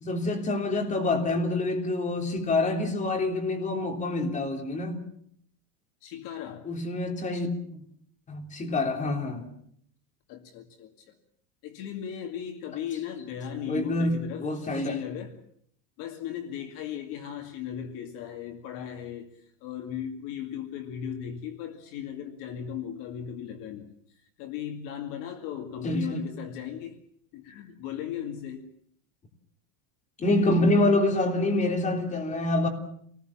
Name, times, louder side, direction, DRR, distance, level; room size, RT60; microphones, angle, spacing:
voice 1, 0.0-5.0 6.6-7.6 8.3-9.4 13.7-15.0 25.8-26.2 30.2-32.7, left 2 dB, 15° left, 3.4 m, -26 dB
voice 2, 6.0-6.7 10.3-11.1 11.6-15.4 16.0-23.9 24.4-27.0 27.3-28.7, left 9 dB, 45° left, 2.3 m, -37 dB
27.5 x 19.5 x 7.3 m
cardioid pair, 170°, 45 cm